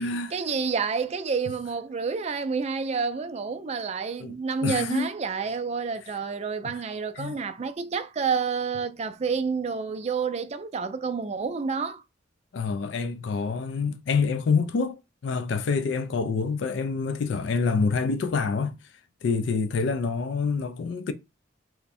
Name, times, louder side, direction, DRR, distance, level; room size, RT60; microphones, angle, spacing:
voice 1, 0.0-12.0, right 5 dB, 35° right, 0.4 m, -29 dB
voice 2, 4.6-5.1 7.2-7.4 12.5-18.8 19.2-21.1, left 4 dB, 70° left, 0.4 m, -27 dB
3.4 x 2.1 x 4.1 m
head